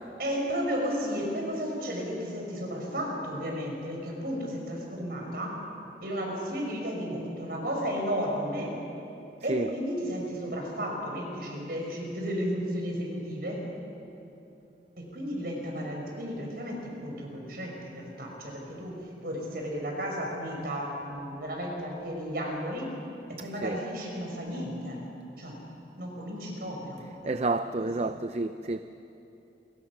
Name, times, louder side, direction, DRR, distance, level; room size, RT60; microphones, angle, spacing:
voice 1, 0.1-5.6 6.0-8.8 9.4-13.6 15.0-22.9 23.3-25.0 25.4-25.6 26.0-27.3 27.8-27.9, equal, 55° right, 0 dB, 5.5 m, -33 dB
voice 2, 27.2-28.8, right 2 dB, 35° right, 9 dB, 0.5 m, -29 dB
28.5 x 23.5 x 6.1 m, 2.9 s
head